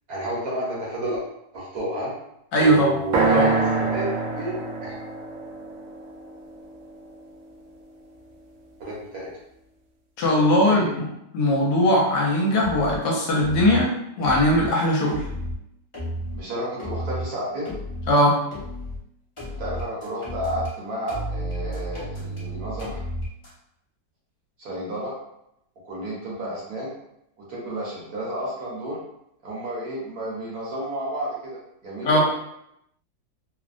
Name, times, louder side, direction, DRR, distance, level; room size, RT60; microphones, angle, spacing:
voice 1, 0.1-1.2 1.5-2.1 2.6-4.1 4.4-4.6 4.8-4.9 8.8-9.3 10.4-10.9 16.3-17.8 19.6-23.0 24.6-25.2 25.8-26.9 27.5-29.0 29.4-32.2, right 1 dB, 65° right, -5 dB, 1.1 m, -31 dB
voice 2, 2.5-3.0 3.3-3.5 10.2-11.1 11.3-13.9 14.2-15.2 18.1-18.4 32.0-32.2, equal, 70° left, -2 dB, 1.2 m, -19 dB
sound 1, 3.1-7.1, right 4 dB, 80° right, 0.7 m, -25 dB
sound 2, 12.6-13.0 13.4-13.8 14.2-14.7 15.1-15.6 15.9-16.4 16.8-17.3 17.7-18.1 18.5-19.0 19.4-20.7 21.1-23.5, equal, 40° left, 0.4 m, -32 dB
3.1 x 2.0 x 2.4 m, 0.79 s
omnidirectional pair, 2.0 m